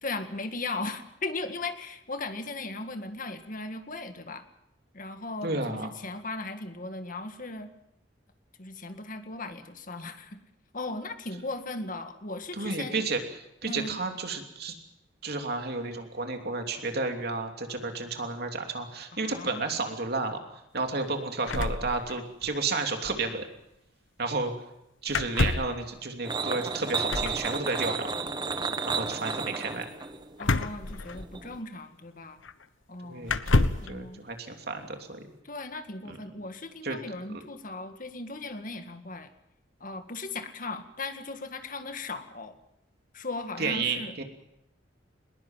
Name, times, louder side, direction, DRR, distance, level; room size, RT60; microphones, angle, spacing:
voice 1, 0.0-4.4 4.9-7.7 8.6-10.4 10.7-13.1 13.7-14.0 19.1-19.7 30.4-32.4 32.9-34.2 35.4-39.3 39.8-42.6 43.1-44.1, left 3 dB, 45° left, 7 dB, 1.9 m, -37 dB
voice 2, 5.4-5.9 12.5-13.2 13.6-14.7 15.2-20.4 20.7-23.5 24.2-24.5 25.0-28.1 28.8-29.9 33.0-35.2 36.1-36.2 36.8-37.0 37.3-37.4 43.6-44.2, right 3 dB, 55° right, 4 dB, 3.0 m, -32 dB
sound 1, 21.5-22.5 22.8-22.9 23.0-23.3 25.1-25.8 27.1-27.4 30.4-31.6 32.4-32.5 33.2-33.9, left 2 dB, 85° left, 1.1 m, -28 dB
sound 2, 26.2-31.6, right 4 dB, 25° right, 1.1 m, -33 dB
21.0 x 21.0 x 7.5 m, 0.83 s
head